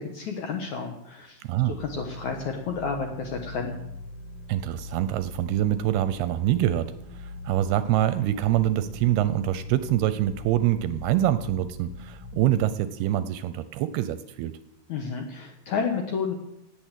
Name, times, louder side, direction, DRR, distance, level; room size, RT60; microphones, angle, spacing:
voice 1, 0.0-3.8 14.9-16.3, left 5 dB, 65° left, 3 dB, 2.0 m, -31 dB
voice 2, 1.4-1.7 4.5-14.6, right 13 dB, 80° right, 13 dB, 2.4 m, -25 dB
sound 1, 1.8-12.6, left 2 dB, 90° left, 4.3 m, -41 dB
17.0 x 8.5 x 7.4 m, 0.82 s
omnidirectional pair, 4.9 m